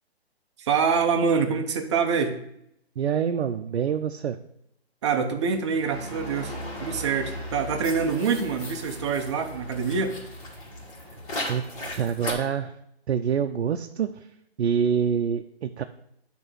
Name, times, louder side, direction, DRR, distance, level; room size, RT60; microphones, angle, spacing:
voice 1, 0.6-2.4 5.0-10.2, right 6 dB, 30° right, 5 dB, 0.6 m, -25 dB
voice 2, 3.0-4.4 11.5-12.8 13.1-14.3 14.6-15.8, right 7 dB, 80° right, 6 dB, 0.5 m, -26 dB
sound 1, 5.4-12.3, left 1 dB, 35° left, 1.7 m, -37 dB
8.7 x 3.0 x 6.1 m, 0.77 s
hypercardioid pair, 155°, 32 cm